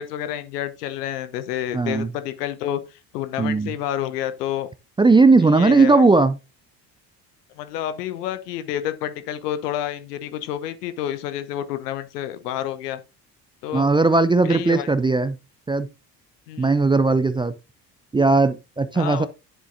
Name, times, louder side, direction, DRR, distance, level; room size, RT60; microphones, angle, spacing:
voice 1, 0.0-4.7 5.6-6.0 7.6-13.0 13.6-13.9 14.4-14.9 16.5-16.7 18.9-19.3, left 11 dB, 70° left, 1.1 m, -29 dB
voice 2, 1.7-2.1 3.4-3.7 5.0-6.4 13.7-15.4 15.7-15.9 16.6-17.5 18.1-19.3, right 3 dB, 10° right, 0.5 m, -17 dB
10.0 x 7.4 x 2.6 m
figure-of-eight pair, 55°, 49 cm